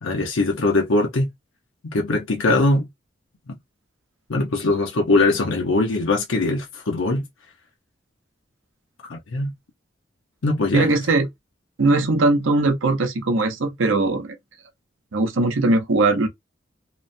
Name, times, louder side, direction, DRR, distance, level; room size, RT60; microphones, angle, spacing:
voice 1, 0.0-1.3 1.8-2.9 4.3-7.2 9.1-9.5 10.4-10.9, left 2 dB, 85° left, 0.7 m, -21 dB
voice 2, 10.7-11.3 11.8-14.4 15.1-16.3, right 2 dB, 85° right, 0.7 m, -20 dB
2.9 x 2.1 x 2.5 m
head